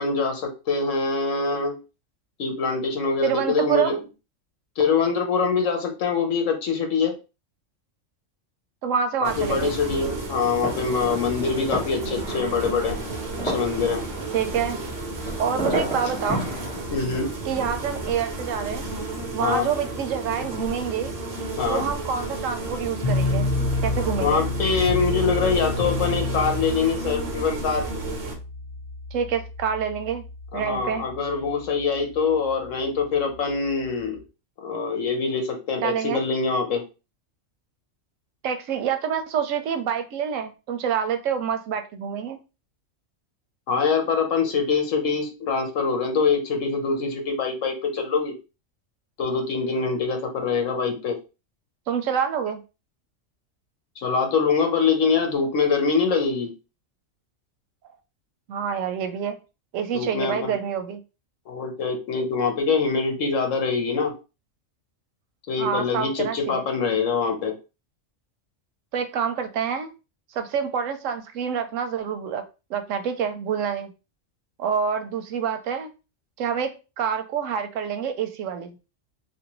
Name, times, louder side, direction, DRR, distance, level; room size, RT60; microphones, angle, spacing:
voice 1, 0.0-1.7 2.4-4.0 4.8-7.1 9.2-13.0 13.4-14.0 16.9-17.3 19.4-19.7 21.6-21.9 24.2-27.8 30.5-34.2 34.6-36.8 43.7-48.4 49.2-51.2 54.0-56.5 59.9-60.5 61.5-64.1 65.5-67.5, left 5 dB, 80° left, 4 dB, 1.2 m, -24 dB
voice 2, 3.2-4.0 8.8-9.7 14.3-14.8 15.4-16.5 17.5-18.9 19.3-21.1 21.7-23.5 23.8-24.5 29.1-30.2 30.5-31.0 35.8-36.2 38.4-42.4 51.9-52.6 58.5-59.4 59.7-61.0 65.6-66.6 68.9-69.9 70.3-72.4 72.7-73.9 74.6-75.9 76.4-78.8, right 7 dB, 85° right, 8 dB, 1.0 m, -27 dB
sound 1, 9.2-28.3, right 2 dB, 60° right, 1.1 m, -32 dB
sound 2, 10.5-16.8, equal, 5° left, 1.8 m, -33 dB
sound 3, 23.0-34.2, left 2 dB, 55° left, 0.5 m, -30 dB
3.2 x 2.6 x 2.9 m, 0.30 s
omnidirectional pair, 1.3 m